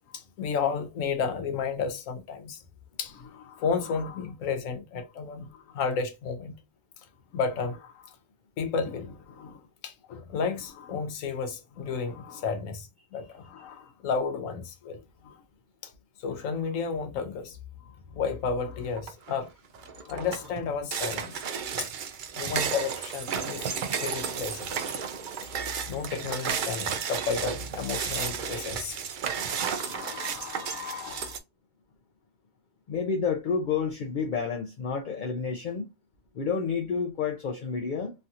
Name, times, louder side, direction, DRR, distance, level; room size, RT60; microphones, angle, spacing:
voice 1, 0.1-2.6 3.0-6.6 7.3-8.1 8.6-15.4 15.8-15.9 16.2-17.6 18.1-19.5 19.9-21.4 21.8-21.9 22.3-23.7 24.0-24.9 25.9-29.0 29.4-31.4, left 5 dB, 80° left, 1.1 m, -32 dB
sound 1, 19.0-19.3 19.7-31.4, right 7 dB, 65° right, 0.5 m, -33 dB
voice 2, 32.9-35.9 36.3-38.1, left 5 dB, 55° left, 0.5 m, -29 dB
3.2 x 2.7 x 2.3 m
omnidirectional pair, 1.4 m